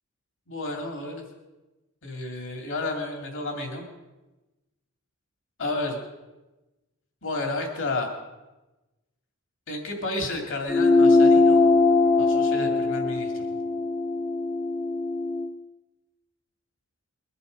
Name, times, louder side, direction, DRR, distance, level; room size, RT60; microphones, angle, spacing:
voice 1, 0.5-1.2 2.0-3.9 5.6-6.0 7.2-8.1 9.7-11.6 12.2-13.3, left 2 dB, 65° left, 3 dB, 2.5 m, -31 dB
sound 1, 10.7-15.5, left 3 dB, 30° left, 0.8 m, -21 dB
21.5 x 11.5 x 5.2 m, 1.1 s
head